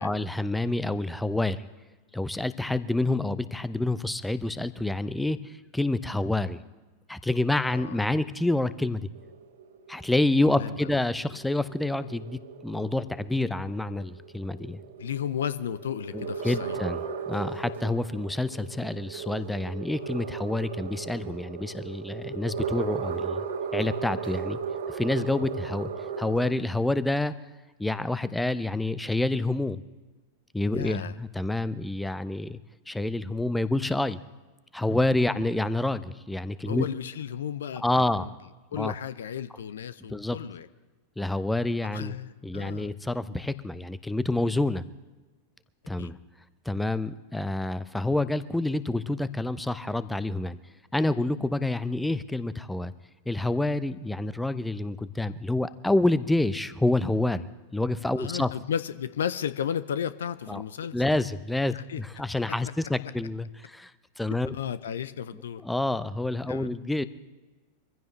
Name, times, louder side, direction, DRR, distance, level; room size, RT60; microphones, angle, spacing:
voice 1, 0.0-1.7 2.1-6.6 7.1-9.1 9.9-14.8 16.1-23.4 23.7-24.6 24.9-25.9 26.2-27.3 27.8-29.8 30.5-32.6 32.9-34.2 34.7-36.9 37.8-38.3 38.8-38.9 40.1-40.4 41.2-42.1 42.4-44.8 45.9-46.2 46.7-50.6 50.9-52.9 53.3-57.5 57.7-58.5 60.5-60.6 60.9-63.9 64.2-64.5 65.6-67.0, left 2 dB, 5° left, 15 dB, 0.7 m, -28 dB
voice 2, 7.6-8.0 10.6-10.9 15.0-16.8 30.7-31.2 36.6-38.3 38.7-40.7 41.9-42.9 46.0-46.1 58.2-60.9 61.7-62.0 64.5-65.6 66.5-66.7, left 9 dB, 65° left, 15 dB, 0.6 m, -34 dB
sound 1, 9.1-26.5, right 6 dB, 60° right, 1.7 m, -36 dB
24.0 x 15.5 x 3.2 m, 1.2 s
figure-of-eight pair, 90°, 0 cm